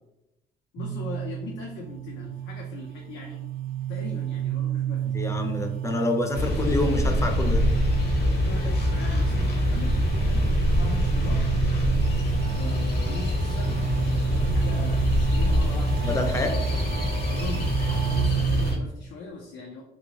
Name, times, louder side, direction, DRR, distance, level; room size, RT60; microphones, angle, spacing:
voice 1, 0.7-3.5 3.9-5.1 8.4-11.5 12.6-16.2 17.3-19.8, left 4 dB, 85° left, 1 dB, 0.5 m, -40 dB
sound 1, 0.8-18.7, right 11 dB, 55° right, 0.5 m, -31 dB
voice 2, 5.1-7.6 16.0-16.5, left 2 dB, 15° left, 4 dB, 0.4 m, -27 dB
sound 2, 6.3-18.8, left 1 dB, 60° left, 0.8 m, -25 dB
3.0 x 2.8 x 2.8 m, 0.91 s
cardioid pair, 120°, 19 cm